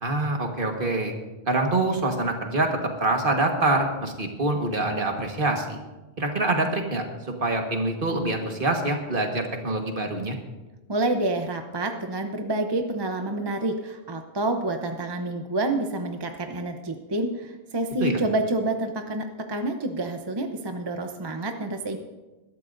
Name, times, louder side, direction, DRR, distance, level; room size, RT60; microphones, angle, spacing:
voice 1, 0.0-1.2 1.5-5.8 6.2-10.3 18.0-18.2, right 2 dB, 50° right, 3 dB, 1.7 m, -25 dB
voice 2, 10.9-22.0, right 2 dB, 25° right, 5 dB, 0.7 m, -28 dB
21.0 x 12.5 x 2.6 m, 1.1 s
omnidirectional pair, 1.2 m